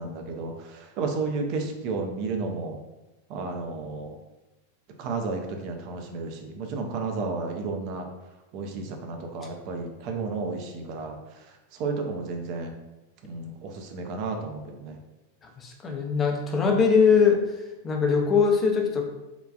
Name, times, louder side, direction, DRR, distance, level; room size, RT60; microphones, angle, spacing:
voice 1, 0.0-2.8 3.3-4.2 5.0-8.1 8.5-12.7 13.3-15.0, right 4 dB, 45° right, 3 dB, 0.5 m, -32 dB
voice 2, 15.4-17.4 17.8-19.0, left 5 dB, 25° left, 1 dB, 0.5 m, -21 dB
3.7 x 2.3 x 2.4 m, 1.0 s
figure-of-eight pair, 90°, 0 cm